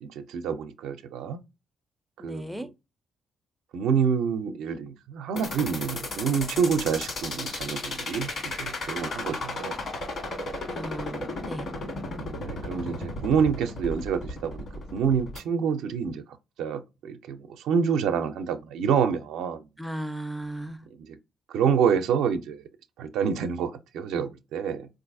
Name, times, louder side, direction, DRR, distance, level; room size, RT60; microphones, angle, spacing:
voice 1, 0.0-1.4 2.2-2.7 3.7-9.8 12.4-14.7 14.9-16.2 16.6-19.6 21.0-21.2 21.5-22.6 23.0-24.9, right 7 dB, 85° right, 0.4 m, -27 dB
voice 2, 2.2-2.7 10.7-11.7 12.7-13.1 19.8-20.8, right 1 dB, ahead, 0.4 m, -36 dB
sound 1, 5.4-15.4, left 2 dB, 60° left, 1.4 m, -34 dB
3.9 x 2.5 x 2.6 m
cardioid pair, 90°, 0 cm